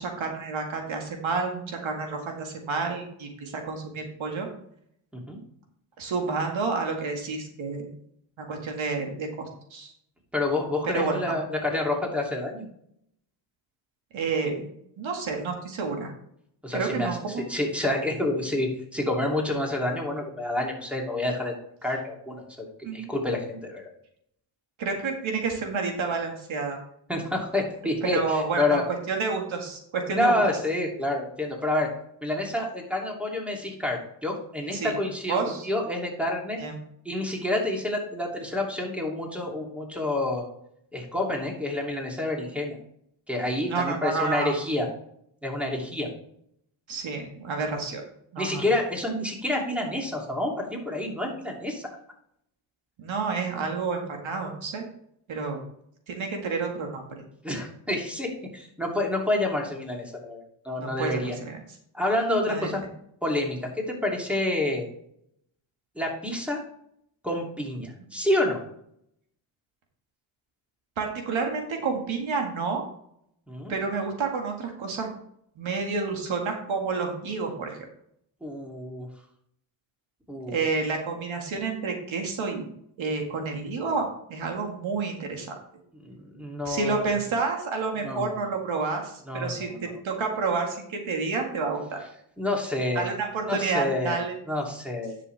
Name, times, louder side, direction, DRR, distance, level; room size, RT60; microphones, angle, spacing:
voice 1, 0.0-4.5 6.0-7.9 8.5-9.9 10.9-11.4 14.1-14.7 15.0-16.1 16.7-17.4 22.8-23.1 24.8-26.8 28.0-30.3 34.7-35.0 35.3-35.7 36.6-36.7 43.7-44.5 46.9-48.0 48.3-48.6 53.0-54.9 55.3-55.6 56.1-57.0 60.8-61.6 62.5-62.9 71.0-72.8 73.7-75.1 75.6-77.8 80.5-82.7 83.0-85.5 86.7-92.0 92.9-94.3, right 4 dB, 75° right, 2 dB, 2.0 m, -29 dB
voice 2, 10.3-12.7 16.6-17.2 17.5-21.5 21.8-23.9 27.1-28.8 30.1-31.9 32.2-36.6 37.0-40.5 40.9-42.8 43.3-44.9 45.4-46.1 48.4-51.9 57.4-61.3 61.9-62.8 63.2-64.9 66.0-66.6 67.2-68.6 73.5-73.7 78.4-79.1 80.3-80.6 86.0-87.0 88.0-88.4 89.3-90.0 92.4-93.1 93.5-94.2 94.5-95.1, left 1 dB, 5° right, -1 dB, 2.8 m, -28 dB
10.5 x 6.8 x 3.4 m, 0.70 s
cardioid pair, 95°, 48 cm